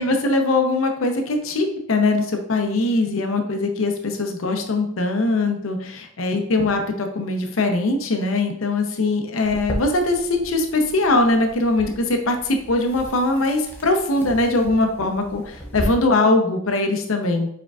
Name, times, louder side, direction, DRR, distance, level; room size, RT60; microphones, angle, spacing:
voice 1, 0.0-17.5, left 2 dB, 75° left, 5 dB, 0.7 m, -21 dB
sound 1, 9.4-15.8, equal, 10° left, 0.7 m, -36 dB
4.7 x 4.4 x 2.4 m, 0.72 s
head